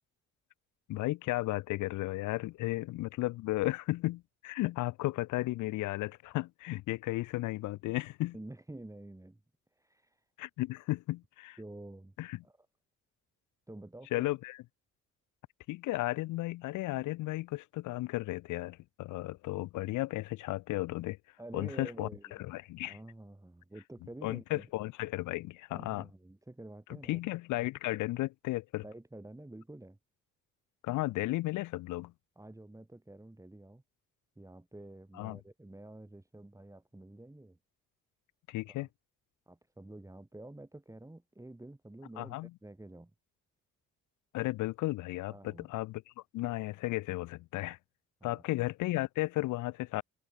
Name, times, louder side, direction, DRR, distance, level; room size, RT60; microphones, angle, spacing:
voice 1, 0.9-8.3 10.4-11.6 12.2-12.4 14.1-14.6 15.7-21.2 21.5-22.1 22.4-23.0 24.2-26.1 27.1-28.8 30.8-32.1 35.2-35.4 38.5-38.9 42.2-42.5 44.3-46.0 46.3-47.8 48.2-50.0, left 18 dB, 85° left, 0.6 m, -34 dB
voice 2, 8.3-9.4 9.8-10.3 11.6-12.1 12.4-12.7 13.7-14.3 21.4-22.4 22.9-24.7 25.7-27.2 28.8-30.0 32.4-33.8 34.4-37.6 38.7-38.9 39.5-43.1 45.3-45.7 48.2-48.4, right 1 dB, 10° right, 7.1 m, -49 dB
cardioid pair, 90°, 30 cm